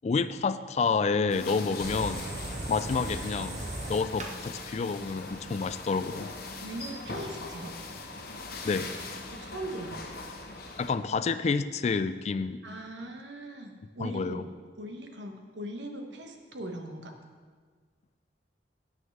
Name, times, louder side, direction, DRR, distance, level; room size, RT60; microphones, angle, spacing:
voice 1, 0.0-2.2 2.7-3.6 3.9-6.3 8.6-8.9 10.8-12.6 14.0-14.4, left 4 dB, 40° left, 13 dB, 0.3 m, -29 dB
sound 1, 1.3-10.9, left 3 dB, 55° left, 1.1 m, -41 dB
sound 2, 1.8-6.8, right 2 dB, 40° right, 0.9 m, -39 dB
voice 2, 6.6-7.7 9.4-10.0 12.6-14.4 14.8-17.1, right 1 dB, 90° right, 4 dB, 1.3 m, -40 dB
8.9 x 6.5 x 6.4 m, 1.5 s
head